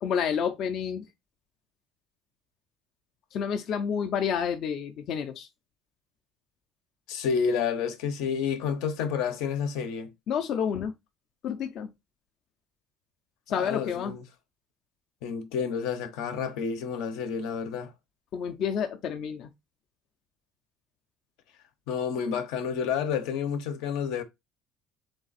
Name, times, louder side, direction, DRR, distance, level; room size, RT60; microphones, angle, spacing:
voice 1, 0.0-1.1 3.3-5.5 10.3-10.9 11.4-11.9 13.5-14.2 18.3-19.5, left 7 dB, 50° left, 0.5 m, -29 dB
voice 2, 7.1-10.1 13.5-14.2 15.2-17.9 21.9-24.2, left 6 dB, 80° left, 0.8 m, -30 dB
3.4 x 3.4 x 4.0 m
cardioid pair, 140°, 0 cm